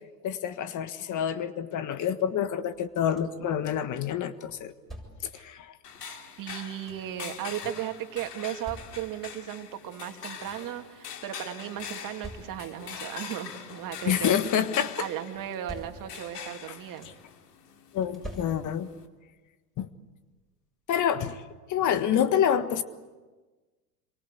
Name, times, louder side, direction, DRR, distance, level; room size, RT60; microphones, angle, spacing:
voice 1, 0.2-4.7 5.3-5.7 14.0-15.1 17.9-18.9 19.8-19.9 20.9-21.4 21.7-22.8, left 9 dB, 40° left, 11 dB, 1.5 m, -27 dB
sound 1, 2.7-3.5 4.5-5.4 6.4-7.2 8.2-9.4 9.9-10.0 10.2-10.8 11.8-12.9 13.9-14.6 15.3-16.4 16.6-17.4 18.0-19.0 20.3-20.4 20.9-21.1, equal, ahead, 7.3 m, -47 dB
sound 2, 5.8-19.1, left 7 dB, 80° left, 2.6 m, -43 dB
voice 2, 6.0-14.4 15.0-17.1, right 11 dB, 40° right, 6 dB, 2.6 m, -36 dB
27.5 x 24.0 x 8.4 m, 1.3 s
hypercardioid pair, 90°, 47 cm